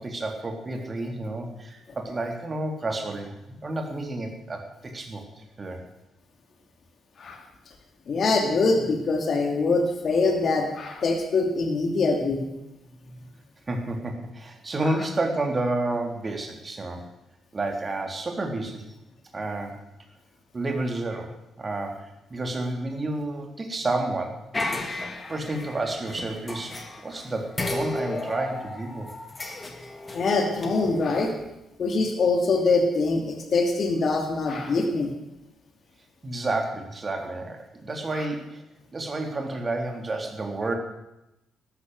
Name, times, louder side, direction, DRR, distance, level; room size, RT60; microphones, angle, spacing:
voice 1, 0.0-5.8 13.7-17.0 17.5-18.9 19.3-19.8 20.5-24.4 25.3-29.1 36.2-38.6 38.9-40.7, right 2 dB, 35° right, 3 dB, 3.6 m, -30 dB
voice 2, 8.1-12.5 30.1-31.3 31.8-35.1 38.1-38.3, left 3 dB, 50° left, 3 dB, 2.7 m, -24 dB
sound 1, 24.5-27.2 27.6-31.3, left 2 dB, 25° left, 2.7 m, -34 dB
13.5 x 12.5 x 8.1 m, 0.90 s
figure-of-eight pair, 40°, 0 cm